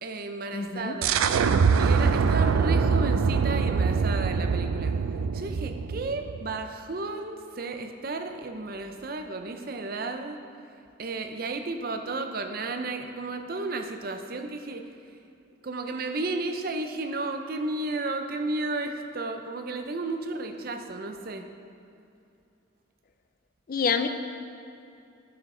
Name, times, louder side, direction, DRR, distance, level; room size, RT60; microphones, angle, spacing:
voice 1, 0.0-1.3 1.8-4.9 5.3-10.4 11.0-14.8 15.6-21.5, right 3 dB, 45° right, 6 dB, 0.6 m, -33 dB
voice 2, 0.5-1.0 23.7-24.1, left 6 dB, 45° left, 9 dB, 0.4 m, -27 dB
sound 1, 1.0-6.5, right 5 dB, 90° right, 0.4 m, -24 dB
12.0 x 7.0 x 3.8 m, 2.7 s
head